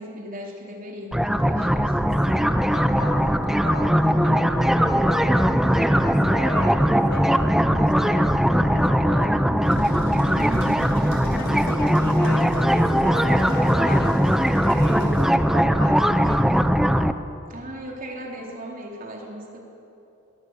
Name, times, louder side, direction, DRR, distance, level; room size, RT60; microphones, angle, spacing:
voice 1, 0.0-2.2 10.3-10.9 17.5-19.6, equal, 45° right, 0 dB, 4.0 m, -37 dB
sound 1, 1.1-17.1, equal, ahead, 0.6 m, -20 dB
voice 2, 2.2-9.8 11.3-14.1 14.6-16.5, left 2 dB, 55° left, 1 dB, 3.3 m, -37 dB
sound 2, 9.4-15.2, equal, 65° right, 6.5 m, -38 dB
23.5 x 19.0 x 8.4 m, 3.0 s
head